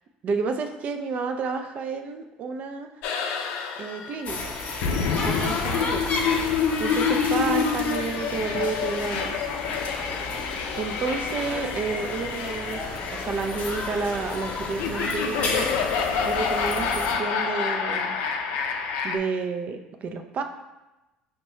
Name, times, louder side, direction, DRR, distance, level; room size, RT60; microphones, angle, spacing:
voice 1, 0.2-2.9 3.8-4.5 5.2-6.1 6.8-9.4 10.4-10.5 10.8-18.2 19.0-20.4, right 4 dB, 50° right, 6 dB, 0.4 m, -30 dB
sound 1, 3.0-19.2, left 6 dB, 70° left, 0.4 m, -28 dB
sound 2, 4.2-17.1, left 3 dB, 50° left, 0.7 m, -32 dB
5.2 x 2.1 x 3.0 m, 1.0 s
hypercardioid pair, 75°, 3 cm